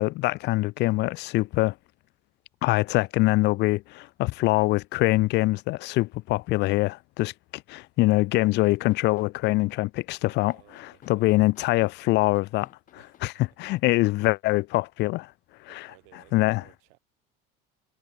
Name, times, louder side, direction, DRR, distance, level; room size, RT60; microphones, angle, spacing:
voice 1, 0.0-1.7 2.6-10.5 11.1-12.7 13.2-13.3 13.6-15.3 16.3-16.6, left 20 dB, 60° left, 0.5 m, -24 dB
sound 1, 8.6-14.8, left 10 dB, 40° left, 1.5 m, -53 dB
voice 2, 10.2-11.5 12.9-14.1 14.5-14.6 15.7-17.0, right 40 dB or more, 85° right, 6.6 m, -59 dB
supercardioid pair, 115°, 20 cm